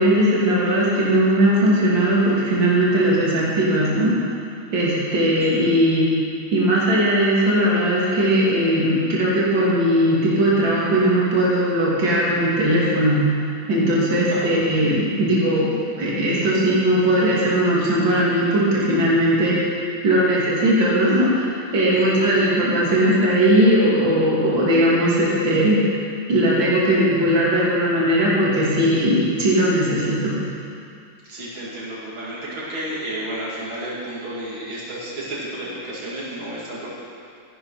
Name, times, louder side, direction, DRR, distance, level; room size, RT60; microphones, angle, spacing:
voice 1, 0.0-4.1 4.7-6.1 6.5-13.2 13.7-15.7 16.0-19.6 20.0-21.5 21.7-25.8 26.3-30.3, right 1 dB, 70° right, -7 dB, 3.4 m, -18 dB
voice 2, 31.3-37.0, right 1 dB, 85° right, -7 dB, 3.3 m, -32 dB
13.5 x 11.5 x 5.7 m, 2.4 s
omnidirectional pair, 2.1 m